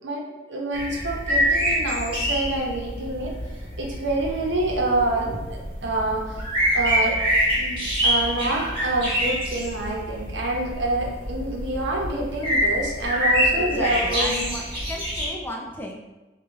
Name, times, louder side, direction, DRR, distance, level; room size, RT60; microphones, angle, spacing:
voice 1, 0.0-3.5 3.8-6.4 6.7-7.2 7.6-14.5, right 2 dB, 90° right, -1 dB, 0.8 m, -27 dB
sound 1, 0.7-15.3, equal, 30° right, 1.3 m, -26 dB
voice 2, 13.5-16.0, left 1 dB, 10° left, -1 dB, 0.4 m, -34 dB
5.1 x 2.4 x 3.1 m, 1.1 s
head